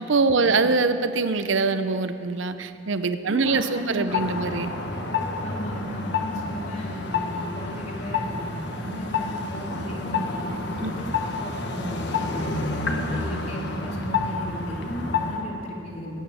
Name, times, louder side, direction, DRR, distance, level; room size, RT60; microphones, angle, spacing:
voice 1, 0.0-4.7 10.8-10.9, right 4 dB, 75° right, 11 dB, 0.6 m, -23 dB
voice 2, 3.3-4.7 5.4-12.7 13.1-16.2, equal, 35° left, -2 dB, 2.5 m, -35 dB
sound 1, 4.1-15.4, left 4 dB, 60° left, 1.3 m, -29 dB
18.0 x 9.1 x 7.0 m, 2.9 s
head